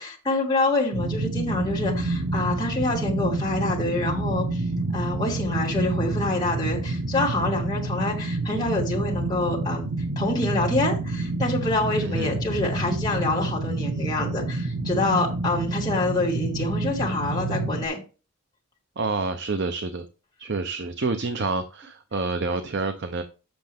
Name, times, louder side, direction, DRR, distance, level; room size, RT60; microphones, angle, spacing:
voice 1, 0.0-4.6 4.9-18.0, left 2 dB, 20° left, 2.6 m, -26 dB
sound 1, 0.9-17.9, right 2 dB, 80° right, 1.2 m, -28 dB
voice 2, 12.0-12.4 19.0-20.0 20.4-23.2, right 3 dB, 50° right, 0.7 m, -28 dB
7.9 x 6.6 x 3.5 m
head